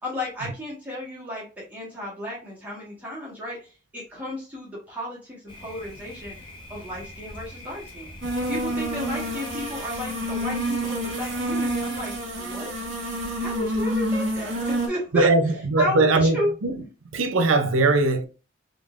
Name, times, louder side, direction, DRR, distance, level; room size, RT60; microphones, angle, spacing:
voice 1, 0.0-6.3 6.7-8.1 8.5-12.7 13.4-15.3 15.8-16.5, left 1 dB, 10° right, 1.4 m, -33 dB
Thunder, 5.5-12.3, left 1 dB, 25° left, 0.8 m, -43 dB
sound 1, 8.2-14.9, right 1 dB, 65° right, 1.4 m, -28 dB
voice 2, 15.1-16.8 17.1-18.2, right 3 dB, 90° right, 0.6 m, -20 dB
3.8 x 3.4 x 2.4 m
head